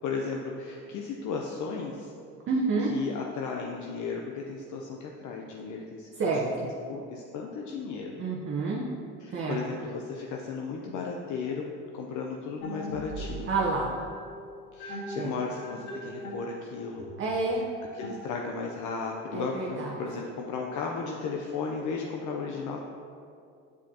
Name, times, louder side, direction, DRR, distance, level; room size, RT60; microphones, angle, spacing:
voice 1, 0.0-2.1 2.9-6.5 6.9-8.2 9.2-13.5 14.7-17.1 17.9-22.8, left 4 dB, 60° left, 0 dB, 0.7 m, -35 dB
voice 2, 2.5-2.9 6.2-6.6 8.2-8.8 9.3-9.6 13.5-13.9 15.2-15.3 17.2-17.6 19.3-19.9, right 3 dB, 35° right, -3 dB, 0.9 m, -28 dB
sound 1, 12.6-18.8, equal, 85° left, 1.3 m, -41 dB
8.2 x 5.0 x 2.9 m, 2.4 s
supercardioid pair, 80°, 35 cm